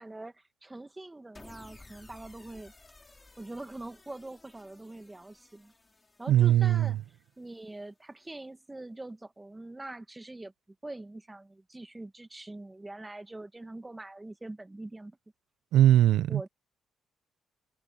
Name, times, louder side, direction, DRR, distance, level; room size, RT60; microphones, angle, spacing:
voice 1, 0.0-2.7 3.4-5.7 6.2-7.0 7.4-10.5 10.8-15.2 16.3-16.5, right 2 dB, 15° right, 1.7 m, -43 dB
sound 1, 1.3-7.7, left 2 dB, 20° left, 3.3 m, -56 dB
voice 2, 6.3-7.0 15.7-16.5, right 12 dB, 85° right, 0.8 m, -21 dB
cardioid pair, 90°, 0 cm